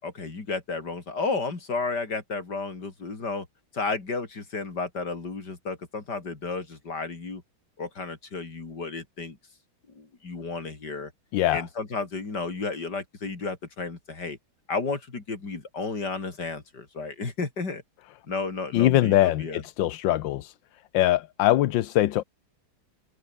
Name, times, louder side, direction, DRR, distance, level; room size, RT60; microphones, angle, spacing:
voice 1, 0.0-3.5 3.7-7.4 7.8-9.4 9.9-11.1 11.5-14.4 14.7-17.8 18.3-19.6, left 4 dB, 50° left, 4.4 m, -32 dB
voice 2, 11.3-11.6 18.7-20.5 20.9-22.2, left 14 dB, 70° left, 1.3 m, -22 dB
omnidirectional pair, 2.3 m